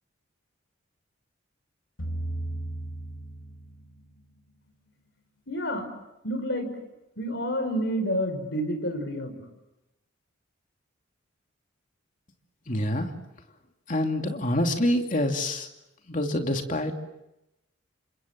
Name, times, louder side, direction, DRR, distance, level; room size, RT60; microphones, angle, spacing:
sound 1, 2.0-4.2, right 1 dB, 80° left, 5.3 m, -35 dB
voice 1, 5.5-5.9 6.2-6.7 7.2-9.5, equal, 60° left, 6 dB, 5.8 m, -29 dB
voice 2, 12.7-13.1 13.9-15.7 16.1-17.0, left 1 dB, 40° left, 4 dB, 2.7 m, -26 dB
29.5 x 26.0 x 7.6 m, 0.91 s
head